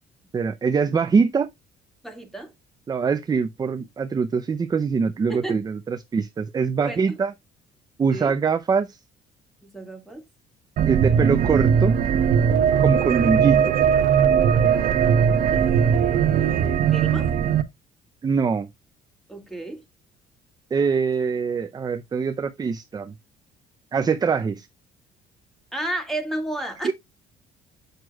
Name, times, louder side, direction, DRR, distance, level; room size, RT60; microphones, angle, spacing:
voice 1, 0.3-1.5 2.9-7.3 8.0-9.0 10.9-12.0 12.8-13.8 18.2-18.7 20.7-23.1 23.9-24.7 26.8-26.9, right 5 dB, 25° right, 0.5 m, -23 dB
voice 2, 2.0-2.5 5.3-5.6 6.8-7.2 8.1-8.3 9.6-10.3 15.5-17.3 19.3-19.8 25.7-26.9, right 1 dB, ahead, 1.9 m, -33 dB
sound 1, 10.8-17.6, right 7 dB, 55° right, 0.8 m, -19 dB
7.8 x 6.2 x 2.2 m
cardioid pair, 110°, 17 cm